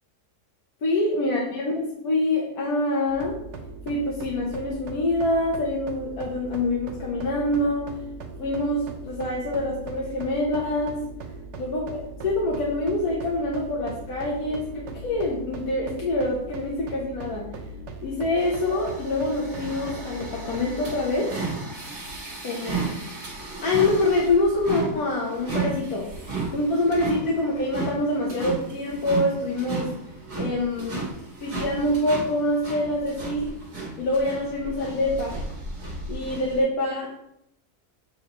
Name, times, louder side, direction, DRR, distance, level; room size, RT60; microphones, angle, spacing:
voice 1, 0.8-3.4 3.9-7.9 8.4-11.0 11.6-17.5 18.0-21.3 22.4-22.7 23.6-26.1 26.5-29.9 30.4-31.0 31.4-33.5 34.0-35.4 36.1-37.2, left 2 dB, 80° left, -4 dB, 1.4 m, -25 dB
sound 1, 3.1-21.1, right 3 dB, 60° right, 0.9 m, -39 dB
sound 2, 18.4-36.6, right 3 dB, 85° right, 2.1 m, -34 dB
7.3 x 4.7 x 3.0 m, 0.80 s
omnidirectional pair, 1.6 m